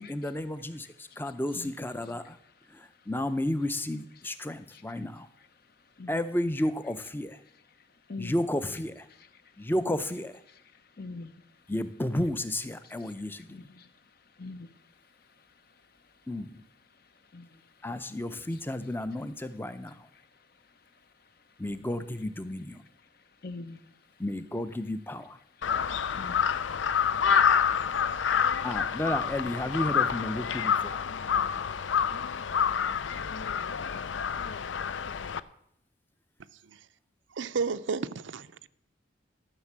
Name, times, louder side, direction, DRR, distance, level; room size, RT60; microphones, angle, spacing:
voice 1, 0.0-2.4 2.7-5.3 6.1-7.4 8.2-9.1 9.6-10.3 11.7-13.7 16.3-16.6 17.8-20.1 21.6-22.8 24.2-25.4 28.6-31.0, left 1 dB, 10° left, 0.6 m, -32 dB
voice 2, 1.2-2.4 4.1-4.3 4.7-5.1 5.4-5.5 6.0-6.4 7.0-7.1 8.1-8.8 9.1-9.4 9.7-10.2 10.4-11.4 12.8-13.9 14.4-14.8 17.3-17.7 18.5-18.6 19.9-20.3 23.4-23.9 25.6-25.7 26.1-26.5, left 3 dB, 55° left, 0.8 m, -46 dB
Crow, 25.6-35.4, left 7 dB, 85° left, 0.5 m, -28 dB
voice 3, 37.3-38.7, right 5 dB, 85° right, 0.6 m, -32 dB
13.0 x 6.6 x 7.4 m
head